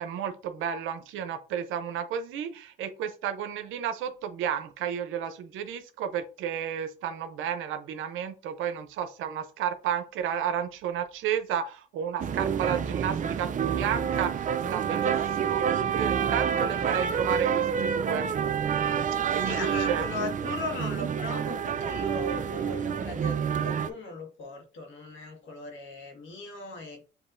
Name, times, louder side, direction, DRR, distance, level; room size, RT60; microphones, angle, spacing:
voice 1, 0.0-15.6 15.9-18.3 19.3-20.1, right 9 dB, 90° right, 0.6 m, -32 dB
sound 1, 12.2-23.9, right 7 dB, 40° right, 0.4 m, -28 dB
voice 2, 16.5-17.0 19.4-27.0, left 2 dB, 75° left, 1.6 m, -38 dB
7.2 x 2.7 x 2.6 m
cardioid pair, 90°, 20 cm